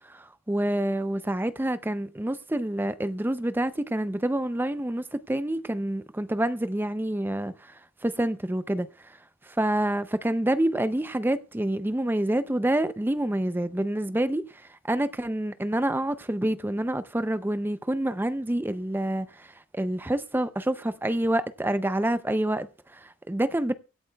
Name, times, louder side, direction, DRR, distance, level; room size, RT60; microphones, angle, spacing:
voice 1, 0.1-9.2 9.4-23.7, right 1 dB, 10° right, 0.4 m, -27 dB
24.0 x 8.4 x 2.3 m
head